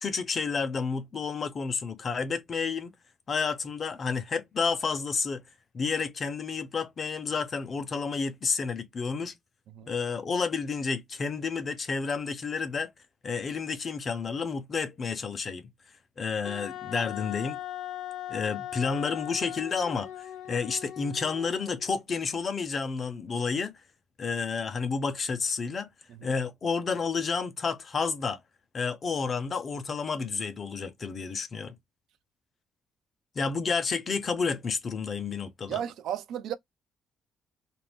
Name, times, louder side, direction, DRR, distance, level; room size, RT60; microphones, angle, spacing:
voice 1, 0.0-2.9 3.3-5.4 5.7-9.3 9.9-12.9 13.2-15.6 16.2-17.6 18.3-23.7 24.2-25.9 26.2-28.4 28.7-31.8 33.3-35.8, left 5 dB, 45° left, 0.8 m, -30 dB
Wind instrument woodwind instrument, 16.4-21.9, left 12 dB, 85° left, 0.7 m, -39 dB
voice 2, 35.7-36.5, right 10 dB, 80° right, 0.5 m, -34 dB
2.6 x 2.0 x 3.3 m
cardioid pair, 90°, 0 cm